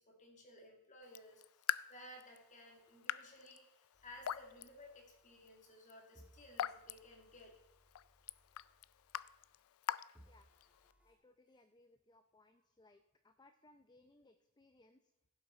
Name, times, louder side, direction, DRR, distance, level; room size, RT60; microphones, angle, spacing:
voice 1, 0.0-7.5, left 1 dB, 35° left, 1 dB, 2.2 m, -57 dB
Raindrop / Drip, 1.0-10.9, left 11 dB, 75° left, 0.3 m, -46 dB
sound 1, 3.9-5.8 6.1-9.8 10.1-11.1, equal, 5° right, 1.8 m, -68 dB
voice 2, 11.0-15.0, left 2 dB, 20° left, 8 dB, 0.5 m, -67 dB
16.0 x 7.4 x 4.2 m, 0.99 s
head